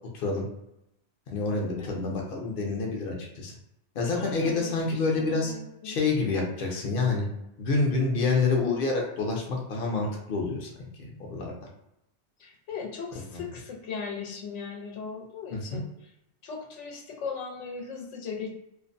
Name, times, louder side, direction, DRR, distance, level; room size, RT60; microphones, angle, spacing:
voice 1, 0.1-0.5 1.3-3.5 3.9-5.5 5.8-7.3 7.6-10.7 11.2-11.5 15.5-15.8, left 3 dB, 55° left, -1 dB, 0.8 m, -27 dB
voice 2, 4.1-6.0 12.4-16.1 16.4-18.5, left 5 dB, 85° left, -1 dB, 1.0 m, -38 dB
2.5 x 2.0 x 2.5 m, 0.83 s
omnidirectional pair, 1.2 m